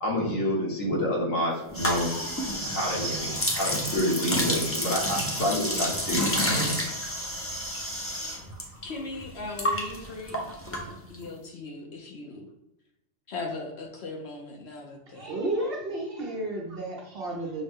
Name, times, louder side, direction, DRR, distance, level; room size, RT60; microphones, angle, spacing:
voice 1, 0.0-2.1 2.6-6.5, left 1 dB, 80° left, -4 dB, 1.7 m, -28 dB
sound 1, 1.7-8.6 8.9-11.3, equal, 20° left, 0.4 m, -29 dB
voice 2, 8.8-12.5 13.3-15.4, left 3 dB, 60° left, 2 dB, 0.8 m, -39 dB
voice 3, 15.2-17.6, right 1 dB, 50° right, -1 dB, 1.0 m, -32 dB
6.2 x 2.1 x 3.5 m, 0.87 s
omnidirectional pair, 1.3 m